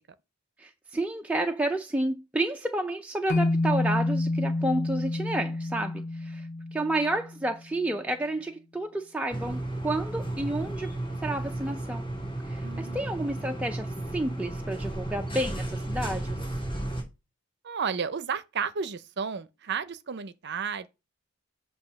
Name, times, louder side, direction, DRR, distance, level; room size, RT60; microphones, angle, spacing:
voice 1, 0.6-10.9 11.2-12.1 12.5-16.4, right 1 dB, 5° right, 0.4 m, -30 dB
sound 1, 3.3-7.6, left 2 dB, 45° left, 0.5 m, -29 dB
sound 2, 9.3-17.0, right 1 dB, 25° left, 2.8 m, -33 dB
voice 2, 12.6-13.0 17.6-20.9, right 6 dB, 55° right, 0.6 m, -32 dB
7.6 x 2.8 x 5.8 m
head